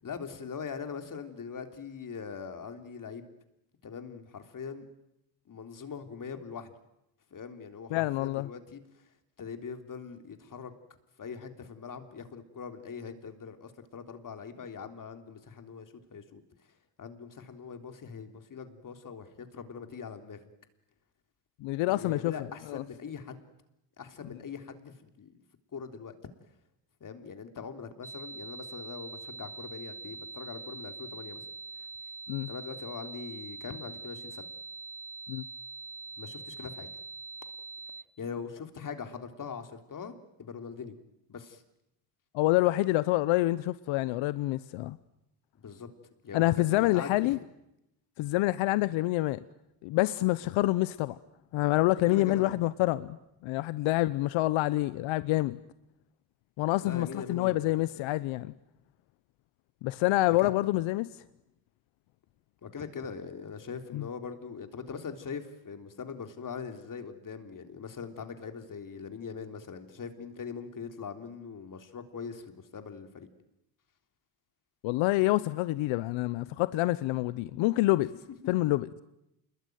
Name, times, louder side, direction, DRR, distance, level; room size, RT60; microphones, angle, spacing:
voice 1, 0.0-3.3 3.8-4.8 5.5-6.7 7.3-9.0 9.4-10.7 11.2-16.4 17.0-20.5 21.8-23.4 24.0-25.4 25.7-26.1 27.0-31.4 31.8-31.9 32.5-34.4 36.2-36.9 38.2-41.0 41.3-41.6 45.6-45.9 46.2-47.2 52.1-52.6 56.8-57.9 60.4-60.5 62.6-73.3, left 6 dB, 40° left, 3.5 m, -42 dB
voice 2, 7.9-8.5 21.6-22.3 22.7-22.8 32.3-32.5 35.3-35.4 42.3-45.0 46.3-47.4 48.2-49.4 49.8-51.2 51.5-53.2 53.4-55.6 56.6-58.5 59.8-61.1 63.9-64.0 74.8-78.1 78.5-78.9, left 18 dB, 80° left, 0.9 m, -27 dB
sound 1, 28.0-38.0, right 4 dB, 5° right, 1.1 m, -44 dB
28.0 x 22.0 x 9.3 m
cardioid pair, 90°, 47 cm